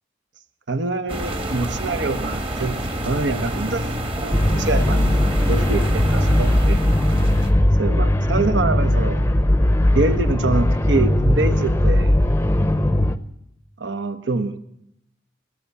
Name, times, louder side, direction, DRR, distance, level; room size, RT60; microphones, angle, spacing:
voice 1, 0.7-2.8 3.0-3.9 4.2-6.8 7.7-9.3 9.9-12.2 13.8-14.6, right 3 dB, 75° right, 1.0 m, -25 dB
sound 1, 1.1-7.5, right 1 dB, 30° right, 1.3 m, -27 dB
sound 2, 4.3-13.2, left 1 dB, 15° left, 0.6 m, -18 dB
19.5 x 8.6 x 8.3 m
head